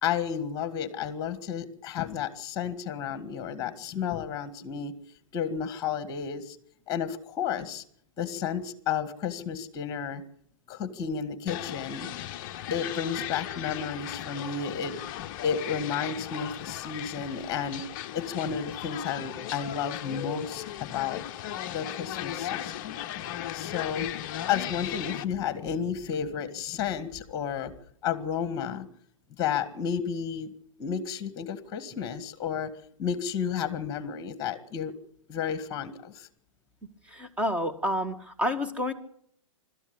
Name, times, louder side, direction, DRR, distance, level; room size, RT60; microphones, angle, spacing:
voice 1, 0.0-4.9 5.3-6.6 6.9-7.8 8.2-10.2 10.7-12.1 12.7-15.0 15.4-17.8 18.1-21.2 21.7-23.0 23.5-24.1 24.5-27.7 28.0-28.9 29.4-30.5 30.8-32.7 33.0-34.9 35.3-36.3, left 7 dB, 20° left, 14 dB, 1.9 m, -32 dB
sound 1, 11.5-25.2, left 12 dB, 35° left, 0.8 m, -37 dB
voice 2, 37.1-38.9, left 1 dB, 5° right, 7 dB, 1.9 m, -29 dB
25.0 x 13.0 x 8.6 m, 0.68 s
figure-of-eight pair, 115°, 17 cm